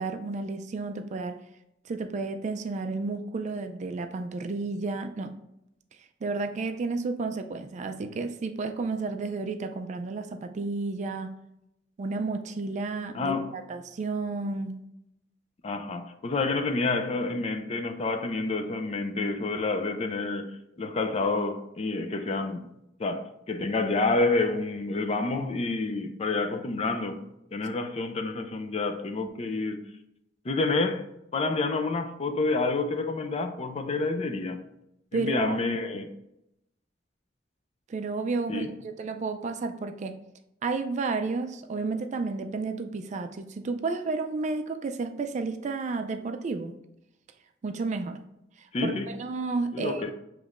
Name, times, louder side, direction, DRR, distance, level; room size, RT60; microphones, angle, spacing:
voice 1, 0.0-1.4 1.9-5.3 6.2-11.3 12.0-14.8 35.1-35.6 37.9-40.2 40.6-46.7 47.6-48.2 48.6-50.0, right 3 dB, 40° right, 0.3 m, -32 dB
voice 2, 13.1-13.6 15.6-22.7 23.0-27.2 27.5-29.8 30.4-31.0 31.3-34.6 35.1-36.1 38.5-38.7 48.7-49.1 49.7-50.1, left 3 dB, 35° left, 0.4 m, -28 dB
6.8 x 3.1 x 2.5 m
head